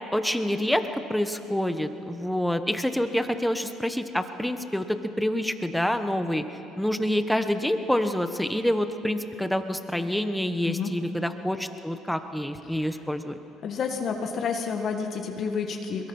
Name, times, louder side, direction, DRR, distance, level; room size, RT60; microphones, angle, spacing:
voice 1, 0.1-6.4 6.8-13.4, left 1 dB, 5° left, 8 dB, 1.3 m, -27 dB
voice 2, 13.6-16.1, left 6 dB, 50° left, 4 dB, 1.7 m, -29 dB
22.5 x 20.5 x 5.6 m, 2.9 s
supercardioid pair, 85°, 0 cm